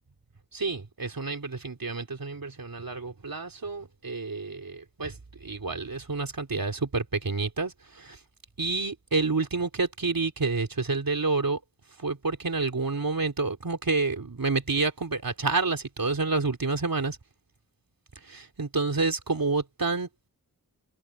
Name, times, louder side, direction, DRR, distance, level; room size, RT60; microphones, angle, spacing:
voice 1, 0.5-5.1 5.4-8.2 8.6-11.6 12.0-17.2 18.3-20.3, right 3 dB, 65° right, 3.6 m, -29 dB
wide cardioid pair, 55°, 37 cm